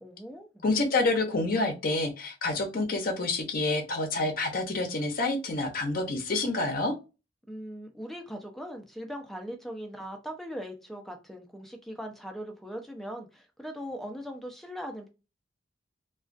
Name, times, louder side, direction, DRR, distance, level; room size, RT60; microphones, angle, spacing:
voice 1, 0.0-0.6 7.5-15.1, equal, ahead, 0.4 m, -40 dB
voice 2, 0.6-6.9, left 2 dB, 55° left, 0.6 m, -28 dB
2.3 x 2.2 x 2.4 m
head